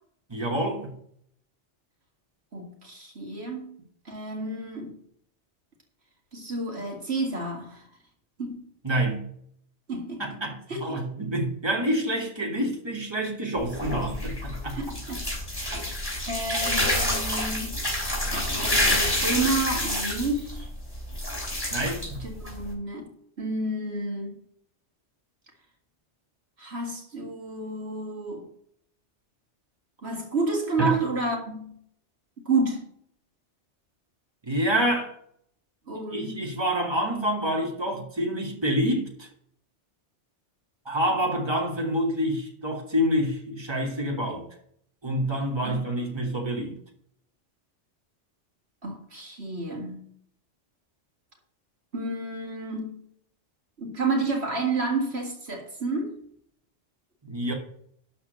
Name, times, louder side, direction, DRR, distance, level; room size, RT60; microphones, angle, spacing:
voice 1, 0.3-1.0 8.8-9.2 10.2-14.8 21.7-22.3 30.8-31.0 34.5-35.1 36.1-39.3 40.9-44.5 45.0-46.8 57.2-57.5, equal, 20° right, 0 dB, 2.3 m, -27 dB
voice 2, 2.5-3.8 4.1-5.0 6.3-7.8 8.4-8.6 9.9-10.2 10.7-10.8 14.7-15.2 15.6-15.8 16.3-17.8 18.3-20.7 22.2-23.1 23.4-24.4 26.6-28.5 30.0-31.8 32.5-32.8 35.9-36.4 45.6-45.9 48.8-50.1 51.9-53.0 53.8-56.2, right 3 dB, 60° right, 1 dB, 2.3 m, -30 dB
sound 1, 13.6-22.7, left 1 dB, 20° left, 3.8 m, -28 dB
12.5 x 4.2 x 7.9 m, 0.65 s
omnidirectional pair, 1.2 m